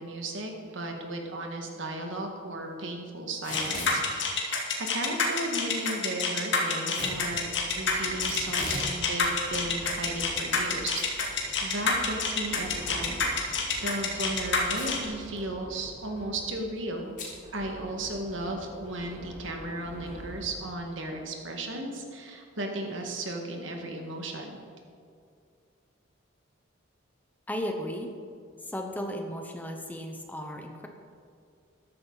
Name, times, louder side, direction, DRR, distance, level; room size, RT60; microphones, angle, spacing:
voice 1, 0.0-7.5 7.8-17.2 17.5-24.6, right 2 dB, 75° right, 2 dB, 1.9 m, -35 dB
Packing tape duct tape / Tearing, 3.3-4.0 6.9-7.2 8.2-8.9 9.3-9.4 10.1-10.7 10.9-11.1 11.5-11.6 13.5-13.8 14.7-15.1 15.4-15.5 15.7-16.1 17.2-17.3, left 2 dB, 40° left, 3.0 m, -38 dB
sound 1, 3.5-15.0, left 5 dB, 60° left, 2.1 m, -27 dB
sound 2, 7.1-20.7, equal, 30° right, 2.7 m, -46 dB
voice 2, 27.5-28.1 28.6-30.9, equal, 10° left, 3 dB, 0.9 m, -35 dB
14.0 x 11.5 x 4.1 m, 2.4 s
head